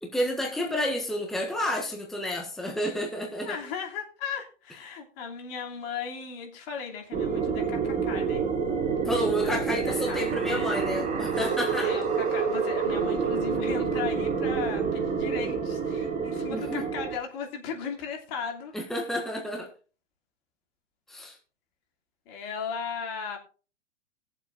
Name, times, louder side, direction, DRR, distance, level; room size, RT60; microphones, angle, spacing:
voice 1, 0.0-3.6 9.0-11.9 16.5-16.8 18.7-19.7 21.1-21.3, equal, ahead, 1 dB, 1.4 m, -30 dB
voice 2, 3.4-8.4 9.4-9.6 9.9-10.2 11.8-18.7 22.3-23.4, left 6 dB, 50° left, 2 dB, 2.9 m, -36 dB
sound 1, 7.1-17.2, right 5 dB, 20° right, 3.4 m, -28 dB
21.0 x 7.4 x 2.6 m, 0.37 s
hypercardioid pair, 130°, 37 cm